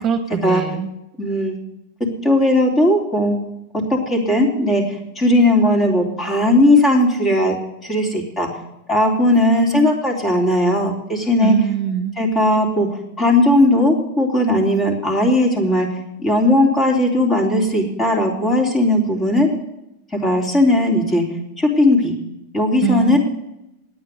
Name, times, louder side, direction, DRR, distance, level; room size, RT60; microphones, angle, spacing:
voice 1, 0.0-0.9 11.4-12.2 22.8-23.2, right 9 dB, 35° right, 8 dB, 1.3 m, -22 dB
voice 2, 1.2-1.6 2.2-3.4 3.9-7.5 7.8-8.5 8.9-11.5 12.2-12.9 13.2-15.9 16.2-19.5 20.1-21.2 21.6-22.1 22.5-23.2, left 1 dB, 20° left, 1 dB, 3.7 m, -17 dB
9.5 x 9.2 x 8.1 m, 0.86 s
hypercardioid pair, 100°, 0 cm